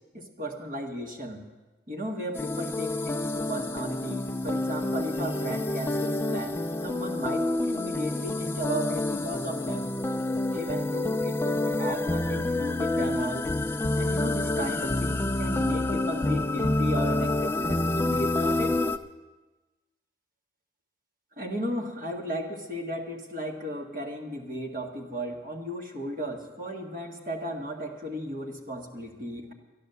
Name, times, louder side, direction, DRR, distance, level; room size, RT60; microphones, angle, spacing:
voice 1, 0.1-1.4 1.9-9.9 10.5-13.5 14.0-18.8 21.4-29.5, equal, 50° right, 1 dB, 1.7 m, -35 dB
sound 1, 2.3-19.0, left 2 dB, 15° left, 0.4 m, -28 dB
12.0 x 11.5 x 6.8 m, 1.2 s
head